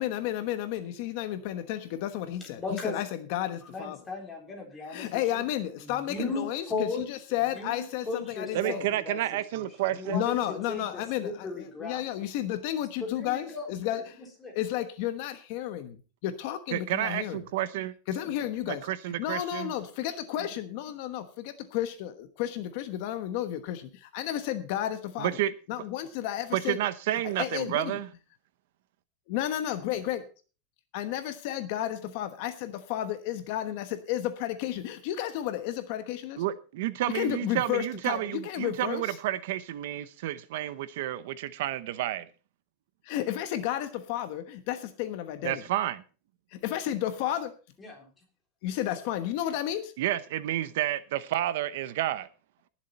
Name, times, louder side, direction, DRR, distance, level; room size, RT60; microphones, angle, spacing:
voice 1, 0.0-4.0 4.9-8.9 10.1-14.2 14.5-17.4 18.1-18.9 19.2-25.4 25.7-26.8 27.4-28.0 29.3-30.2 30.9-36.4 37.1-39.2 43.0-45.6 46.5-47.5 48.6-49.9, left 12 dB, 50° left, 1.2 m, -32 dB
voice 2, 2.6-3.0 3.7-5.4 5.8-7.0 7.5-9.2 9.5-10.4 10.7-12.0 13.0-13.7 13.9-14.5 47.8-48.1, left 3 dB, 15° left, 3.7 m, -36 dB
voice 3, 8.5-10.2 16.7-17.9 18.7-19.7 25.2-25.5 26.5-28.1 36.4-42.3 45.4-46.0 50.0-52.3, right 13 dB, 60° right, 0.8 m, -30 dB
19.0 x 7.4 x 4.2 m
supercardioid pair, 165°, 0 cm